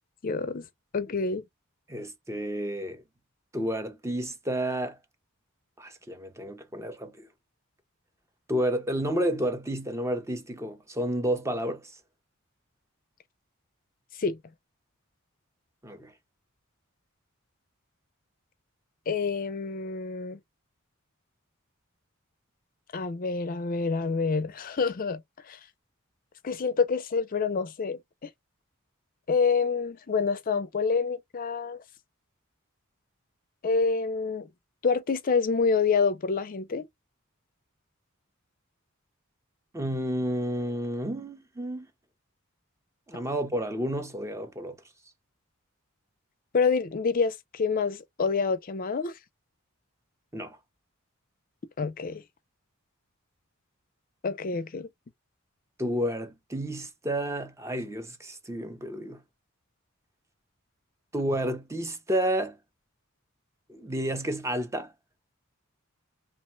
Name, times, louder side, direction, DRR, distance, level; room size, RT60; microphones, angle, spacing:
voice 1, 0.2-0.6 0.9-1.4 14.2-14.4 19.1-20.4 22.9-25.2 25.5-25.6 26.4-28.3 29.3-31.8 33.6-34.5 34.8-36.8 46.5-49.1 51.8-52.2 54.2-54.9, left 5 dB, 40° left, 0.4 m, -27 dB
voice 2, 1.9-3.0 3.5-5.0 5.8-7.3 8.5-11.9 15.8-16.1 39.7-41.9 43.1-44.8 50.3-50.6 55.8-59.2 61.1-62.6 63.7-64.9, right 1 dB, 15° right, 0.6 m, -31 dB
2.9 x 2.2 x 3.0 m
head